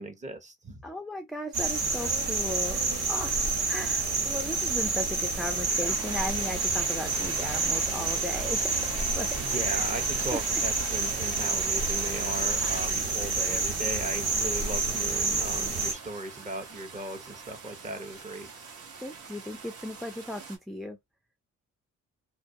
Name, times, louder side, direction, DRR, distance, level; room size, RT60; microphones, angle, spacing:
voice 1, 0.0-0.8 9.4-18.5, right 2 dB, 25° right, 0.7 m, -37 dB
voice 2, 0.8-2.8 3.1-3.4 3.7-9.3 9.6-9.8 10.3-10.4 19.0-21.0, left 1 dB, ahead, 0.3 m, -36 dB
sound 1, 1.5-15.9, right 3 dB, 70° right, 1.2 m, -28 dB
sound 2, 1.8-20.6, right 5 dB, 55° right, 0.8 m, -43 dB
2.3 x 2.2 x 2.6 m
cardioid pair, 90°, 30 cm